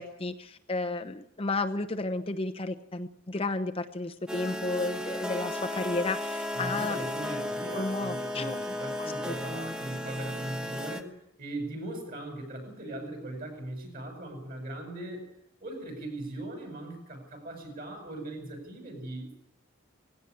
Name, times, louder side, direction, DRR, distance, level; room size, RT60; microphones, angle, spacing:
voice 1, 0.0-7.0 7.7-8.7 9.0-9.7, left 2 dB, 30° left, 6 dB, 0.9 m, -33 dB
sound 1, 4.3-11.0, left 1 dB, 5° right, 1.3 m, -35 dB
voice 2, 6.5-19.4, right 1 dB, 45° right, 4 dB, 7.8 m, -39 dB
19.0 x 17.0 x 9.9 m, 0.74 s
head